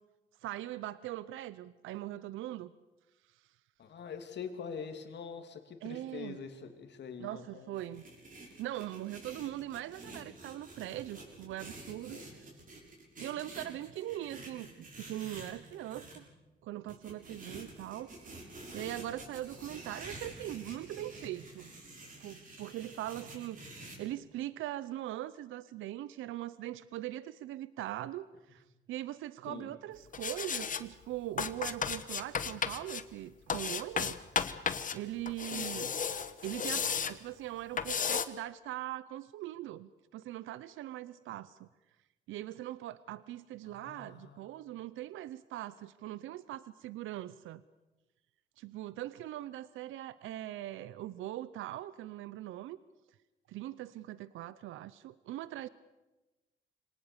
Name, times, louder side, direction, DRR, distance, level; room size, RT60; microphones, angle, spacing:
voice 1, 0.4-2.7 3.3-3.4 5.8-6.4 7.2-8.0 8.6-12.2 13.2-16.3 16.6-18.1 18.7-21.7 22.2-35.9 36.4-41.7 42.3-47.6 48.6-52.8 53.5-55.7, right 14 dB, 85° right, 17 dB, 0.7 m, -41 dB
voice 2, 3.8-8.0 12.1-12.3 29.5-29.7 35.4-35.7 43.6-44.4, left 6 dB, 60° left, 6 dB, 2.9 m, -45 dB
sound 1, 7.7-16.2 16.9-24.0, right 2 dB, 45° right, 6.7 m, -49 dB
sound 2, 30.1-30.8 31.4-33.0 33.5-35.0 35.3-37.1 37.8-38.3, left 6 dB, 40° left, 1.2 m, -34 dB
25.5 x 19.0 x 7.1 m, 1.1 s
cardioid pair, 90°, 20 cm